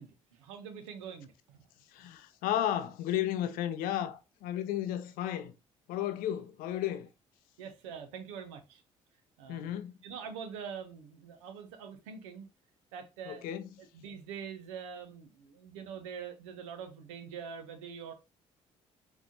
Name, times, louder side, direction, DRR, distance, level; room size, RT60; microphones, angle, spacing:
voice 1, 0.0-1.7 7.6-8.8 9.4-9.7 10.0-12.5 12.9-13.5 13.9-18.1, right 7 dB, 70° right, 0.9 m, -44 dB
voice 2, 1.9-5.5 5.9-7.1 9.5-10.0 13.3-13.7, left 11 dB, 60° left, 0.6 m, -33 dB
4.6 x 4.2 x 2.7 m
figure-of-eight pair, 45°, 17 cm